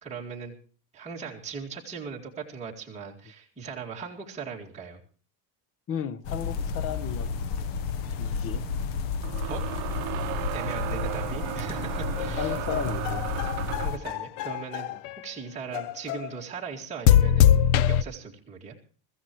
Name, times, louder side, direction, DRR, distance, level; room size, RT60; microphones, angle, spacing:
voice 1, 0.0-0.5 0.9-5.0 9.5-9.7 10.2-10.3 10.5-12.6 13.8-14.9 15.2-18.7, right 5 dB, 15° right, 2.2 m, -39 dB
voice 2, 5.9-7.3 8.2-8.6 12.4-13.2 14.9-15.0, left 7 dB, 30° left, 0.8 m, -34 dB
sound 1, 6.2-14.0, left 5 dB, 65° left, 1.1 m, -32 dB
sound 2, 7.3-7.4 9.2-14.1, right 17 dB, 65° right, 0.8 m, -35 dB
sound 3, 12.2-15.2 15.7-16.3 17.1-18.0, left 10 dB, 90° left, 0.8 m, -23 dB
23.5 x 14.5 x 3.1 m
cardioid pair, 165°, 48 cm